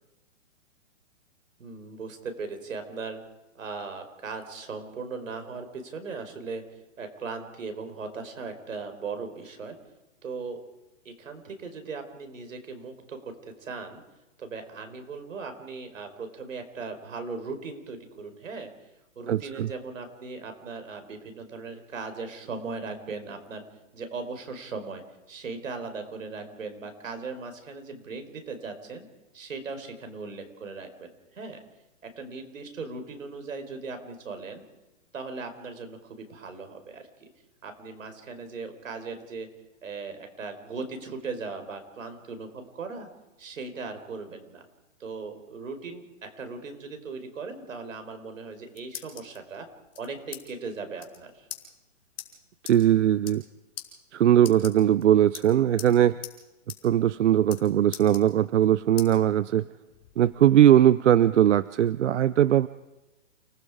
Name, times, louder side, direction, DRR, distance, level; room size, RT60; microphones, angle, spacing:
voice 1, 1.6-3.2 3.5-6.6 7.0-9.8 10.2-10.6 11.0-14.0 14.4-18.7 19.1-23.6 23.9-25.0 25.3-29.1 29.3-31.6 32.0-34.6 35.1-37.3 37.6-39.5 39.8-43.1 43.4-44.7 45.0-49.7 49.9-51.5, right 4 dB, 85° right, 7 dB, 4.9 m, -38 dB
voice 2, 19.3-19.7 52.6-53.4 54.1-56.2 56.8-59.7 60.2-62.7, right 11 dB, 65° right, 16 dB, 0.7 m, -20 dB
sound 1, 48.4-49.4 49.9-50.4 50.7-50.8 51.0-51.2 51.5-51.6 52.2-52.3 52.7-52.8 53.1-53.5 53.8-53.9 54.4-55.0 55.3-55.9 56.2-56.4 56.7-56.8 57.1-57.6 57.9-58.6 59.0-59.1 59.6-60.5, left 11 dB, 50° left, 5.9 m, -41 dB
29.5 x 20.0 x 5.0 m, 1.0 s
hypercardioid pair, 165°, 38 cm